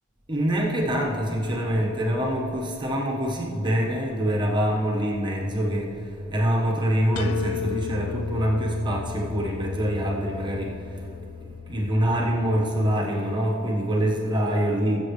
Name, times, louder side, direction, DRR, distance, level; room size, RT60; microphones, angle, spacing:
voice 1, 0.3-11.2 11.7-15.0, equal, 20° right, -2 dB, 1.3 m, -25 dB
sound 1, 7.2-13.0, left 8 dB, 80° left, 0.3 m, -35 dB
16.5 x 7.7 x 3.3 m, 2.9 s
head